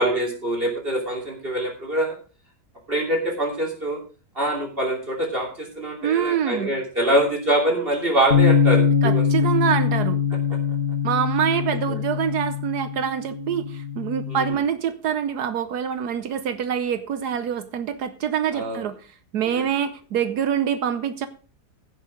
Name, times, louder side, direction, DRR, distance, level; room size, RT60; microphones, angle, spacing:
voice 1, 0.0-2.1 2.9-4.0 4.3-9.2 11.9-12.0 14.3-14.6 18.5-18.8 19.6-19.7, right 1 dB, 35° right, 1 dB, 3.1 m, -24 dB
voice 2, 6.0-6.7 9.0-10.2 11.0-19.0 19.3-21.3, right 8 dB, 75° right, 11 dB, 1.3 m, -25 dB
Bass guitar, 8.3-14.6, left 7 dB, 35° left, 1.2 m, -22 dB
16.0 x 6.4 x 5.1 m, 0.37 s
omnidirectional pair, 1.7 m